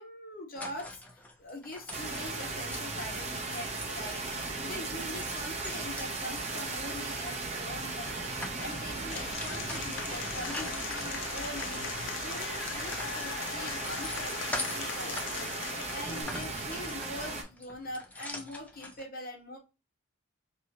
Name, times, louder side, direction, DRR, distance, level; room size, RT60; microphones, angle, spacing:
voice 1, 0.0-12.0 12.2-19.6, left 1 dB, 45° left, 1 dB, 0.9 m, -43 dB
sound 1, 0.5-4.8 5.1-15.4 15.8-19.0, left 1 dB, 5° left, 0.5 m, -44 dB
sound 2, 1.9-17.4, right 3 dB, 35° right, 0.6 m, -37 dB
Applause / Crowd, 9.1-16.2, left 8 dB, 70° left, 0.4 m, -40 dB
2.9 x 2.6 x 2.8 m, 0.28 s
head